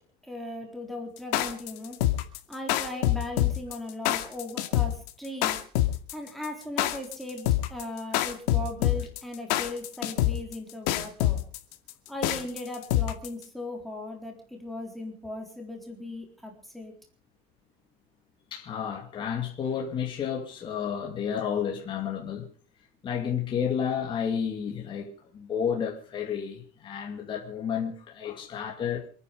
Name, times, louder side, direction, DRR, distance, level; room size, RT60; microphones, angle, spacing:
voice 1, 0.2-2.0 2.5-5.6 6.1-11.4 12.1-16.9, left 1 dB, ahead, 3.9 m, -38 dB
sound 1, 1.2-13.4, left 14 dB, 85° left, 2.3 m, -26 dB
voice 2, 18.5-22.5 23.0-29.1, left 7 dB, 25° left, 2.6 m, -31 dB
27.5 x 9.8 x 5.3 m
cardioid pair, 175°, 20 cm